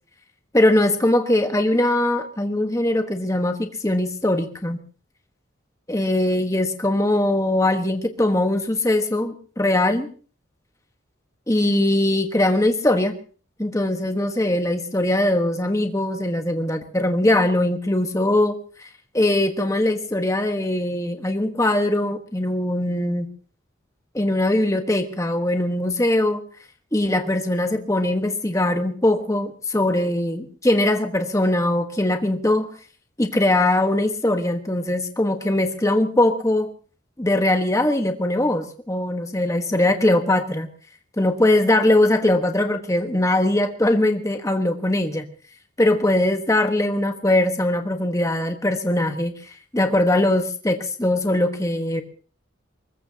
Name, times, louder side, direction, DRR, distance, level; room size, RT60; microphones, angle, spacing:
voice 1, 0.5-4.8 5.9-10.1 11.5-13.2 13.6-18.5 19.1-23.3 24.1-26.4 26.9-32.7 33.2-36.7 37.2-40.7 41.2-45.2 45.8-49.3 49.7-52.0, left 1 dB, 15° left, 6 dB, 1.3 m, -21 dB
24.0 x 21.0 x 2.9 m, 0.39 s
head